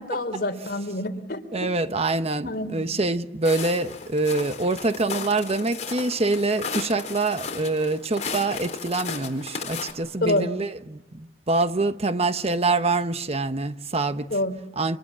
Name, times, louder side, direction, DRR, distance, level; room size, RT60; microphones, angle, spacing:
voice 1, 0.0-1.7 2.4-2.8 10.2-10.5 14.3-14.6, left 1 dB, 60° left, 3.5 m, -27 dB
voice 2, 1.5-14.3 14.8-15.0, right 3 dB, 35° right, 1.0 m, -25 dB
Walk footsteps, 3.4-9.9, left 5 dB, 40° left, 4.4 m, -35 dB
29.5 x 26.5 x 7.5 m
head